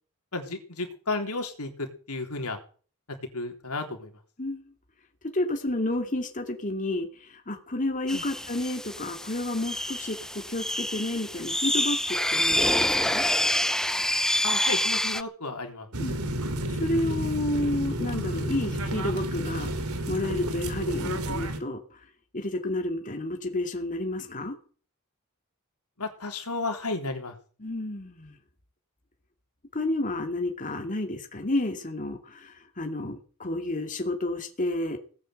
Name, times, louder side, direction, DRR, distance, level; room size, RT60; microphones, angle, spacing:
voice 1, 0.3-2.6 3.3-4.1 8.1-8.2 14.4-15.9 26.0-27.4, left 3 dB, 85° left, 4 dB, 3.6 m, -33 dB
voice 2, 4.4-4.7 5.3-13.3 16.0-16.2 16.7-21.8 22.3-24.6 27.6-28.4 29.7-35.0, left 1 dB, 35° left, 4 dB, 2.4 m, -31 dB
sound 1, 8.1-15.2, left 1 dB, 5° left, 0.7 m, -27 dB
sound 2, 15.9-21.6, right 1 dB, 80° right, 2.9 m, -31 dB
18.0 x 9.5 x 7.8 m, 0.41 s
head